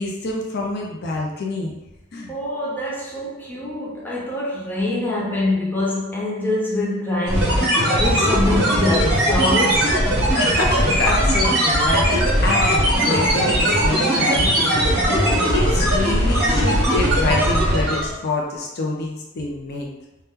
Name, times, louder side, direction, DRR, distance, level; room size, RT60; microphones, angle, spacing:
voice 1, 0.0-1.7 2.1-2.3 10.4-19.9, left 2 dB, 55° left, 0.5 m, -26 dB
voice 2, 2.3-9.9, left 2 dB, 10° left, 0.6 m, -24 dB
sound 1, 7.3-18.2, equal, 55° right, 1.1 m, -19 dB
2.8 x 2.2 x 3.5 m
head